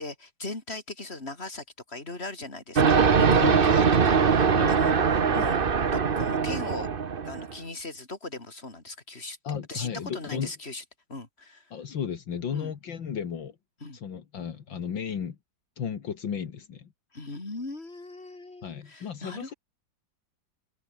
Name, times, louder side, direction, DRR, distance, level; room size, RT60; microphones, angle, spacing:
voice 1, 0.0-3.0 3.3-5.6 5.9-6.9 7.2-9.4 9.7-10.8 11.1-11.7 12.5-12.7 13.8-14.0 17.1-19.5, left 2 dB, 30° left, 4.5 m, -39 dB
sound 1, 2.8-7.5, right 6 dB, 35° right, 1.0 m, -22 dB
voice 2, 3.1-3.7 4.5-4.8 9.4-10.5 11.7-13.6 13.9-15.4 15.8-16.9 18.6-19.5, left 7 dB, 75° left, 2.5 m, -34 dB
omnidirectional pair, 2.1 m